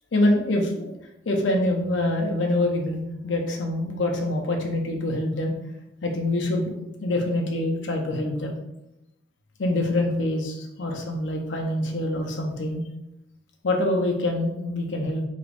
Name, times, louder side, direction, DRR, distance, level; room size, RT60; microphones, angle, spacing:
voice 1, 0.1-0.9 1.3-5.5 6.0-6.7 7.0-8.6 9.6-12.8 13.6-15.3, left 1 dB, 85° left, 2 dB, 0.6 m, -25 dB
3.3 x 3.0 x 2.4 m, 0.89 s
head